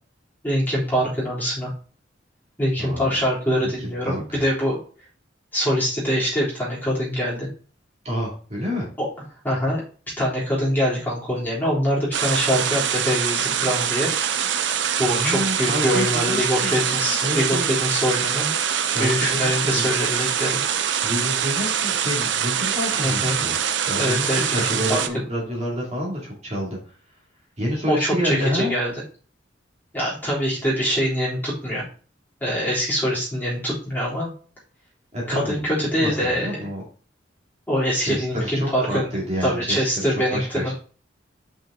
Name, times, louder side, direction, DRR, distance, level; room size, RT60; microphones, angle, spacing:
voice 1, 0.4-1.7 2.6-4.8 5.5-7.5 9.0-9.1 9.4-9.8 10.2-14.1 15.0-18.5 19.0-20.6 23.0-23.4 23.9-25.0 27.9-28.9 29.9-31.8 32.4-34.3 35.3-36.6 37.7-39.1 39.4-40.7, equal, 10° left, -7 dB, 3.6 m, -24 dB
voice 2, 2.8-3.1 3.6-4.4 8.0-8.9 15.2-16.8 17.2-17.7 18.8-19.9 21.0-23.6 23.8-26.8 27.6-28.7 35.1-35.7 36.0-36.8 38.0-40.7, equal, 35° right, -4 dB, 2.5 m, -28 dB
sound 1, 12.1-25.1, right 8 dB, 65° right, 0.6 m, -24 dB
5.8 x 5.5 x 3.7 m, 0.40 s
head